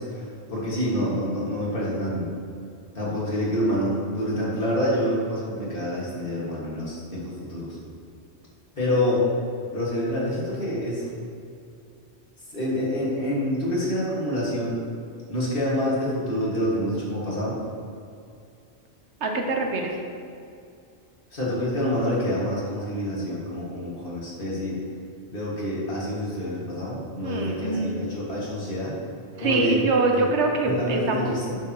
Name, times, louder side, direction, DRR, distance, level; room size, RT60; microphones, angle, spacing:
voice 1, 0.0-2.3 2.9-7.8 8.8-9.2 9.7-11.0 12.5-14.8 15.3-17.6 21.3-24.8 25.3-28.9 29.4-29.8 30.2-30.3 30.6-31.6, left 1 dB, 50° left, -7 dB, 2.1 m, -27 dB
voice 2, 19.2-20.0 27.2-28.0 29.4-31.4, right 3 dB, 70° right, 2 dB, 1.0 m, -24 dB
8.5 x 6.6 x 2.9 m, 2.4 s
omnidirectional pair, 1.2 m